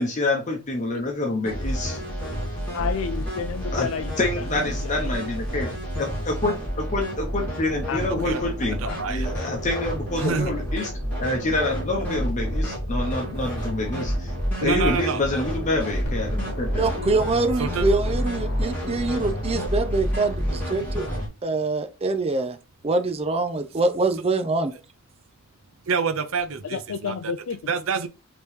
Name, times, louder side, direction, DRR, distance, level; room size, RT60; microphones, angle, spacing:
voice 1, 0.0-2.0 3.7-3.9 4.2-5.7 6.0-8.8 9.1-10.9 11.2-14.3 14.6-16.9, left 2 dB, 35° left, 0.9 m, -27 dB
sound 1, 1.4-21.3, equal, 10° left, 2.6 m, -29 dB
voice 2, 2.7-4.5 4.8-5.4 7.9-8.0 8.4-8.5 8.8-9.0 26.7-27.7, left 6 dB, 70° left, 0.4 m, -31 dB
voice 3, 8.0-8.4 8.8-9.3 10.2-10.5 14.6-15.2 17.6-17.9 25.9-27.1 27.7-28.1, right 5 dB, 80° right, 0.6 m, -27 dB
sound 2, 16.0-20.1, left 2 dB, 55° left, 1.2 m, -35 dB
voice 4, 16.8-21.1 21.4-22.6 22.8-24.7, right 3 dB, 30° right, 0.5 m, -24 dB
5.1 x 3.0 x 3.2 m
head